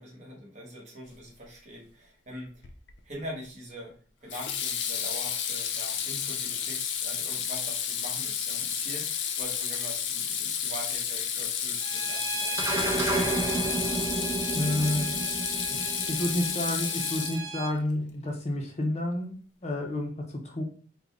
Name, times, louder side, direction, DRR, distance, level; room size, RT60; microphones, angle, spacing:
voice 1, 0.0-2.6 3.0-13.5, equal, 40° right, -2 dB, 1.2 m, -43 dB
Water tap faucet / Sink (filling or washing), 2.6-3.0 4.3-17.7, left 8 dB, 85° left, 0.5 m, -31 dB
Bowed string instrument, 11.8-17.7, right 4 dB, 90° right, 0.8 m, -37 dB
sound 1, 12.6-17.2, right 2 dB, 15° right, 0.7 m, -31 dB
voice 2, 14.5-15.3 15.7-19.3 19.6-20.6, left 1 dB, 35° left, 2 dB, 0.6 m, -30 dB
3.8 x 2.2 x 3.5 m, 0.41 s
head